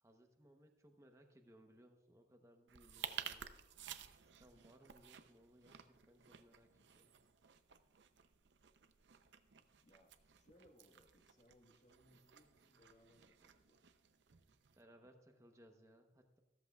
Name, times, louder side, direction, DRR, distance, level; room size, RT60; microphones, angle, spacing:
voice 1, 0.0-3.5 4.2-7.1 14.8-16.4, equal, 15° right, 5 dB, 0.8 m, -65 dB
sound 1, 2.7-14.8, right 8 dB, 75° right, 0.6 m, -54 dB
voice 2, 9.6-13.8, equal, 40° left, 2 dB, 1.5 m, -69 dB
14.0 x 13.0 x 2.3 m, 1.1 s
head